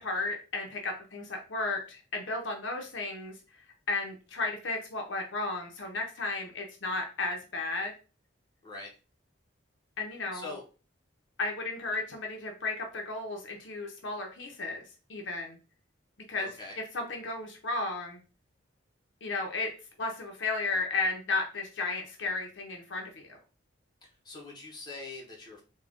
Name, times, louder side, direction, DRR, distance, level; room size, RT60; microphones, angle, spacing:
voice 1, 0.0-3.4 3.9-7.9 10.0-10.6 11.4-15.6 16.3-16.5 16.9-18.2 19.2-19.7 20.0-23.4, left 3 dB, 70° left, 2 dB, 0.7 m, -34 dB
voice 2, 8.6-8.9 10.3-10.6 16.4-16.8 24.0-25.6, left 3 dB, 20° left, -2 dB, 1.0 m, -43 dB
3.7 x 2.3 x 3.4 m, 0.34 s
head